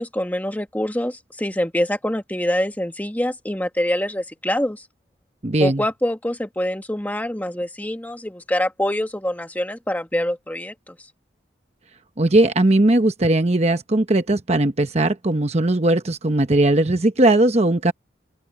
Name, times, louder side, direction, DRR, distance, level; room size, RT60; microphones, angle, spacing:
voice 1, 0.0-4.9 5.6-11.0, left 1 dB, 10° left, 1.5 m, -25 dB
voice 2, 5.4-5.8 12.2-17.9, right 2 dB, 35° right, 0.9 m, -18 dB
open air
head